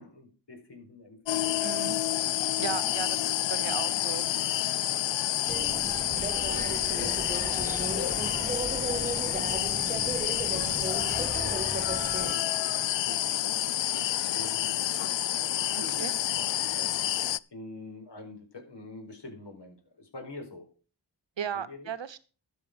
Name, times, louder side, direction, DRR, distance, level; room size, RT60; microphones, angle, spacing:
voice 1, 0.0-1.6 2.6-3.1 5.7-5.9 6.4-12.6 13.1-13.6 14.3-14.7 15.3-16.1 16.4-16.9 17.5-20.7 21.5-21.9, left 2 dB, 70° left, 4 dB, 4.7 m, -46 dB
sound 1, 1.3-17.4, left 12 dB, 90° left, 0.5 m, -29 dB
voice 2, 1.6-2.0 2.6-4.3 15.8-16.1 21.4-22.2, right 8 dB, 85° right, 15 dB, 1.1 m, -36 dB
sound 2, 5.5-12.3, right 3 dB, 20° right, 0.6 m, -35 dB
12.5 x 8.1 x 5.1 m, 0.36 s
cardioid pair, 60°, 43 cm